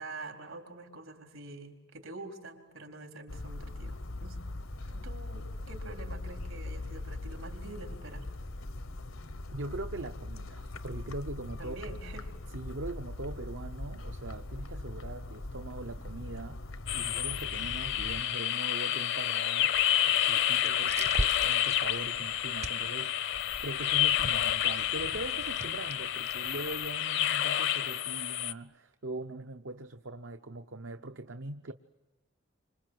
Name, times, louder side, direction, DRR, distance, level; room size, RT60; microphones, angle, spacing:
voice 1, 0.0-4.4 4.9-8.3 11.6-12.3, right 2 dB, 80° right, 4.1 m, -46 dB
sound 1, 3.3-18.2, left 2 dB, 80° left, 1.2 m, -41 dB
voice 2, 9.5-11.8 12.5-19.7 20.0-31.7, right 2 dB, 65° right, 0.8 m, -41 dB
sound 2, 16.9-28.5, left 11 dB, 60° left, 0.8 m, -29 dB
sound 3, 19.6-27.0, right 2 dB, 35° right, 0.8 m, -41 dB
28.0 x 26.0 x 7.8 m
head